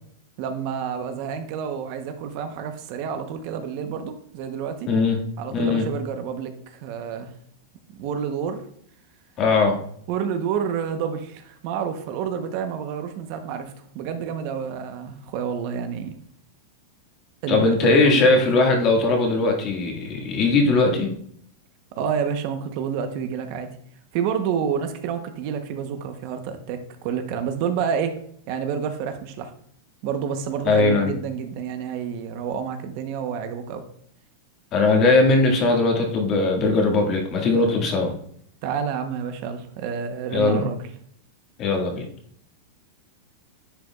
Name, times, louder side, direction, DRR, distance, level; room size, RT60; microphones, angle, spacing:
voice 1, 0.4-4.9 5.4-7.3 7.9-8.6 10.1-16.1 17.4-18.3 21.9-23.7 24.1-28.2 28.5-29.5 30.0-33.8 38.6-40.8, right 7 dB, 50° right, 7 dB, 0.9 m, -29 dB
voice 2, 4.9-5.2 5.5-5.9 9.4-9.8 17.5-21.1 30.6-31.1 34.7-38.1 40.3-40.7 41.6-42.1, left 3 dB, 35° left, 2 dB, 1.8 m, -19 dB
10.0 x 5.1 x 2.3 m, 0.63 s
supercardioid pair, 145°, 0 cm